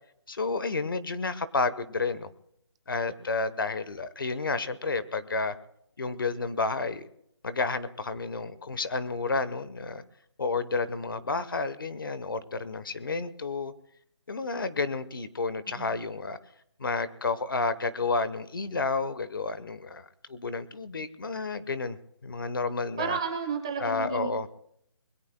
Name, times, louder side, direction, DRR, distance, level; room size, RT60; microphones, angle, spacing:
voice 1, 0.3-2.3 2.9-5.5 6.0-7.1 7.4-10.0 10.4-13.7 14.3-16.4 16.8-23.2 23.8-24.5, left 3 dB, 45° left, 14 dB, 1.0 m, -31 dB
voice 2, 23.0-24.5, right 5 dB, 10° right, 4 dB, 0.8 m, -32 dB
25.5 x 21.5 x 2.2 m, 0.73 s
hypercardioid pair, 180°, 15 cm